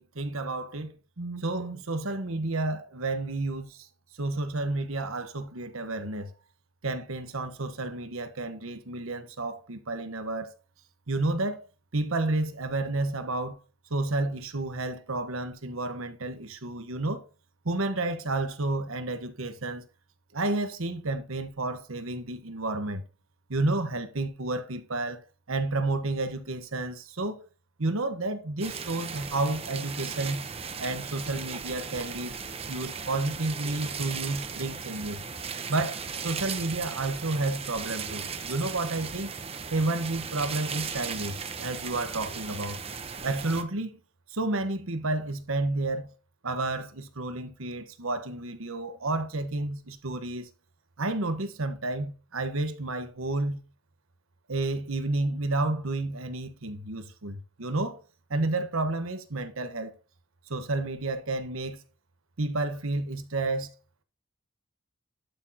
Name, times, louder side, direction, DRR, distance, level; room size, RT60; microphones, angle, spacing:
voice 1, 0.0-3.9 4.2-6.3 6.8-10.5 11.1-11.6 11.9-13.6 13.9-17.2 17.6-19.8 20.3-23.0 23.5-25.2 25.5-27.4 27.8-30.5 30.8-32.4 32.7-35.2 35.7-39.3 39.7-42.8 43.2-44.0 44.3-46.1 46.4-50.5 51.0-53.6 54.5-58.0 58.3-59.9 60.5-61.8 62.4-63.7, right 2 dB, 85° right, 1.2 m, -31 dB
sound 1, 28.6-43.6, right 6 dB, 30° right, 0.8 m, -37 dB
11.5 x 6.3 x 2.8 m
head